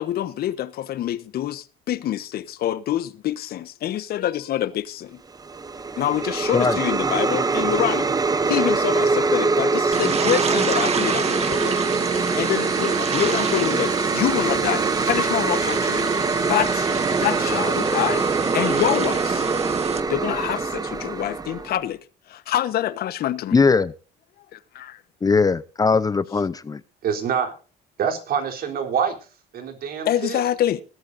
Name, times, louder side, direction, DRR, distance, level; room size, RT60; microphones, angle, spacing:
voice 1, 0.0-5.2 6.0-8.1 8.5-11.8 12.2-16.1 16.5-16.9 17.2-19.4 20.1-22.0 22.3-23.6 24.5-25.0 30.0-30.8, left 12 dB, 65° left, 1.2 m, -26 dB
sound 1, 5.3-21.8, right 4 dB, 20° right, 1.2 m, -23 dB
sound 2, 9.9-20.0, right 6 dB, 40° right, 1.8 m, -28 dB
voice 2, 23.5-23.9 25.2-26.8, left 4 dB, 20° left, 0.7 m, -19 dB
voice 3, 27.0-27.5 28.0-29.2 29.5-30.4, right 7 dB, 60° right, 3.6 m, -25 dB
21.0 x 13.0 x 2.7 m
cardioid pair, 110°, 17 cm